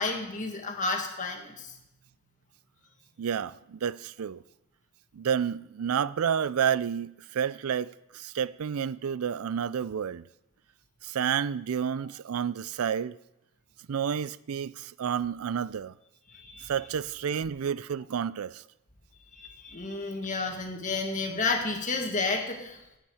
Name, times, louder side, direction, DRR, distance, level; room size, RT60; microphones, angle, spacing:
voice 1, 0.0-1.7 16.3-16.7 19.3-22.8, left 3 dB, 35° left, 1.9 m, -31 dB
voice 2, 3.2-4.4 5.1-10.2 11.0-13.2 13.9-15.9 16.7-18.6, right 8 dB, 85° right, 0.4 m, -30 dB
17.0 x 9.1 x 4.9 m
head